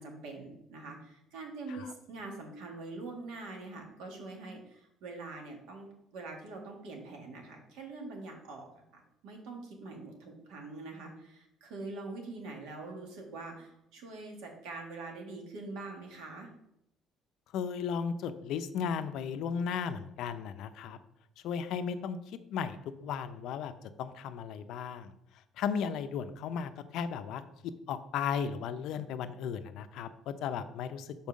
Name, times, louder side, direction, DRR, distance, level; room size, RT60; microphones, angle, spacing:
voice 1, 0.0-16.5, right 3 dB, 85° right, 2 dB, 1.8 m, -44 dB
voice 2, 17.5-21.0 21.4-22.2 22.5-22.8 23.0-25.1 25.6-31.1, left 7 dB, 60° left, 11 dB, 0.5 m, -35 dB
5.4 x 4.4 x 6.2 m, 0.81 s
cardioid pair, 170°, 0 cm